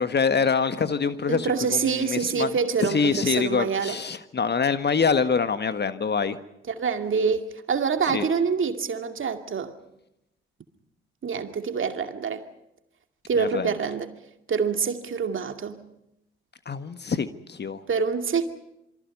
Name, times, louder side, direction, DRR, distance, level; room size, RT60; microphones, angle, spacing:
voice 1, 0.0-2.5 2.8-6.4 8.1-8.3 13.4-13.7 16.6-17.8, left 5 dB, 35° left, 1.5 m, -25 dB
voice 2, 1.3-4.0 6.7-9.8 11.2-12.4 13.3-14.1 14.5-15.8 17.9-18.4, right 5 dB, 40° right, 2.4 m, -26 dB
27.5 x 24.0 x 5.5 m
figure-of-eight pair, 45°, 30 cm